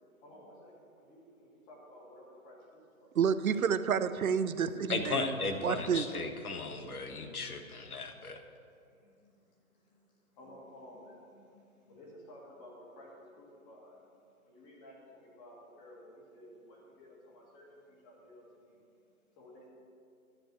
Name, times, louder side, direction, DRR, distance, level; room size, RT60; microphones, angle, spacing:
voice 1, 0.0-3.1 4.1-4.4 5.2-5.6 6.5-7.4 8.9-18.8 19.4-19.7, equal, 15° left, -2 dB, 1.9 m, -54 dB
voice 2, 3.2-5.3 5.6-6.1, right 7 dB, 70° right, 13 dB, 0.7 m, -29 dB
voice 3, 4.9-8.4, left 4 dB, 90° left, 6 dB, 1.6 m, -36 dB
11.5 x 6.9 x 8.1 m, 2.4 s
hypercardioid pair, 160°, 43 cm